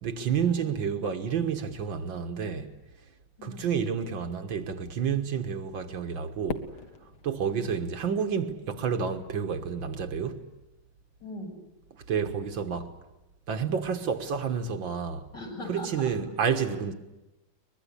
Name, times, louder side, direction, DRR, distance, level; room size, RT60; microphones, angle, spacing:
voice 1, 0.0-2.7 3.4-6.7 7.2-10.5 12.1-12.9 13.5-15.3 15.7-16.9, right 7 dB, 70° right, 2.1 m, -30 dB
Fireworks, 6.5-8.8, left 7 dB, 85° left, 2.2 m, -41 dB
voice 2, 11.2-11.5 15.3-15.9 16.5-16.6, left 1 dB, 60° left, 7.3 m, -40 dB
23.0 x 21.5 x 10.0 m
omnidirectional pair, 2.2 m